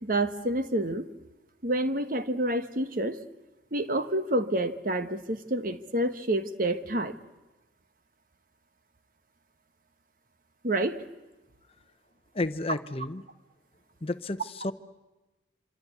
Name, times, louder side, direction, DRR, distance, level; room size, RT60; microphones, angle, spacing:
voice 1, 0.0-1.1 1.6-3.2 3.7-7.1 10.6-11.0, right 1 dB, 45° right, 9 dB, 1.3 m, -28 dB
voice 2, 12.3-13.2 14.0-14.7, left 2 dB, 30° left, 12 dB, 0.8 m, -31 dB
26.0 x 25.5 x 8.2 m, 1.1 s
head